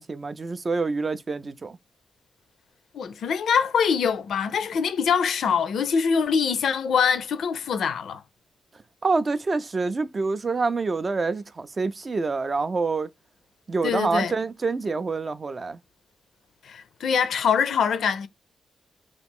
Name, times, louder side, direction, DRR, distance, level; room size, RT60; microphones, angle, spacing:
voice 1, 0.0-1.8 9.0-13.1 13.7-15.8, right 4 dB, 30° right, 0.3 m, -26 dB
voice 2, 2.9-8.2 13.8-14.3 16.6-18.3, left 6 dB, 75° left, 0.4 m, -24 dB
2.9 x 2.4 x 3.5 m
cardioid pair, 115°, 0 cm